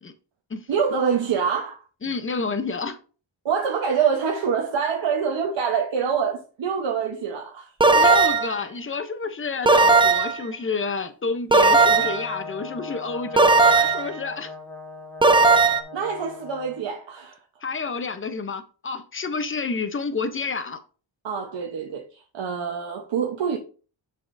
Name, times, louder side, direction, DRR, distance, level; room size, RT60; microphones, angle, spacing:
voice 1, 0.7-1.8 3.4-7.7 15.9-17.4 21.2-23.6, right 6 dB, 70° right, 1.0 m, -25 dB
voice 2, 2.0-3.0 7.9-14.5 17.6-20.8, left 4 dB, 25° left, 0.7 m, -29 dB
sound 1, 7.8-8.5 9.7-10.4 11.5-12.3 13.4-14.1 15.2-15.8, right 3 dB, 10° right, 0.3 m, -16 dB
Brass instrument, 11.7-16.9, left 3 dB, 5° left, 1.6 m, -39 dB
7.3 x 6.4 x 2.6 m
wide cardioid pair, 140°, 47 cm